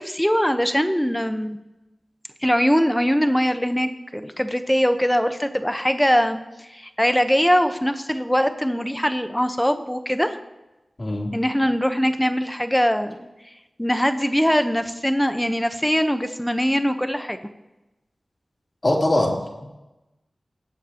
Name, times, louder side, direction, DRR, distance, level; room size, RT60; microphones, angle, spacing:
voice 1, 0.0-1.6 2.4-10.4 11.3-13.2 13.8-17.4, equal, 5° left, 8 dB, 1.0 m, -22 dB
voice 2, 11.0-11.3 18.8-19.7, left 1 dB, 35° left, -2 dB, 3.2 m, -22 dB
19.5 x 8.2 x 2.9 m, 1.0 s
wide cardioid pair, 65°, 0 cm